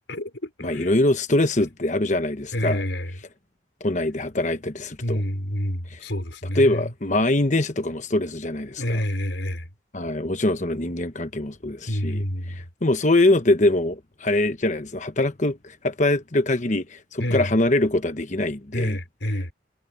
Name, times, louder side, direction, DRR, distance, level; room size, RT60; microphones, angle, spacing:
voice 1, 0.1-0.9 2.5-3.1 5.0-6.9 8.8-9.7 11.9-12.6 17.2-17.5 18.7-19.5, equal, 70° left, 4.9 m, -28 dB
voice 2, 0.6-2.8 3.8-5.2 5.9-6.0 6.5-9.0 9.9-19.0, left 1 dB, 40° left, 1.1 m, -23 dB
head